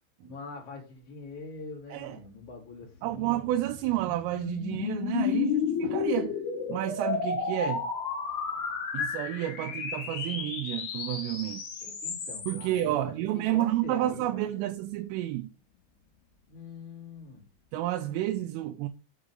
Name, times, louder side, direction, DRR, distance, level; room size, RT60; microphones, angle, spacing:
voice 1, 0.2-3.5 9.6-9.8 11.8-14.7 16.5-17.4, left 4 dB, 35° left, 3.8 m, -44 dB
voice 2, 3.0-6.4 6.7-7.9 8.9-11.6 12.5-15.5 17.7-18.9, right 14 dB, 85° right, 3.2 m, -30 dB
sound 1, 3.1-12.8, left 7 dB, 50° left, 3.5 m, -32 dB
8.0 x 5.1 x 3.8 m
omnidirectional pair, 5.7 m